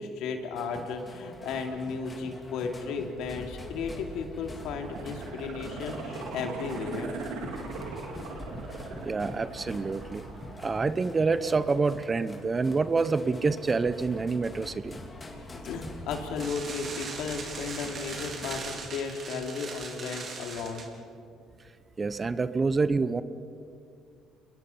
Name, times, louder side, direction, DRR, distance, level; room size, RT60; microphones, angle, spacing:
voice 1, 0.0-7.1 15.6-20.9, left 5 dB, 75° left, 4 dB, 2.8 m, -34 dB
sound 1, 0.5-18.8, left 2 dB, 25° left, 3.5 m, -44 dB
sound 2, 4.6-11.5 11.9-12.0, right 4 dB, 80° right, 3.8 m, -40 dB
voice 2, 9.0-10.2 10.6-15.0 22.0-23.2, right 4 dB, 30° right, 14 dB, 0.9 m, -27 dB
sound 3, 16.4-20.9, right 4 dB, 50° right, 4.2 m, -40 dB
28.5 x 22.0 x 5.7 m, 2.4 s
supercardioid pair, 85°, 0 cm